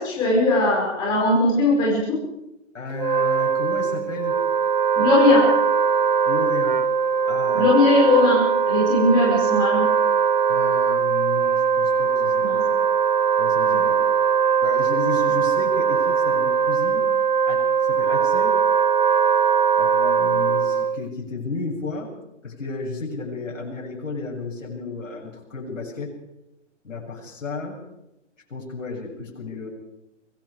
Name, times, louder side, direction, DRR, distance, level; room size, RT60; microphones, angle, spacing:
voice 1, 0.0-2.2 5.0-5.5 7.5-9.9 12.4-12.6 13.7-13.8, left 2 dB, 10° left, -4 dB, 5.3 m, -19 dB
voice 2, 2.7-4.4 6.3-6.8 7.3-7.7 10.5-12.4 13.4-14.0 14.6-17.1 17.5-18.6 19.8-22.1 22.4-26.1 26.8-27.8 28.5-29.7, left 3 dB, 90° left, -2 dB, 7.9 m, -33 dB
Wind instrument woodwind instrument, 2.9-21.0, right 6 dB, 40° right, 0.7 m, -21 dB
23.5 x 22.5 x 5.0 m, 0.87 s
hypercardioid pair, 175°, 37 cm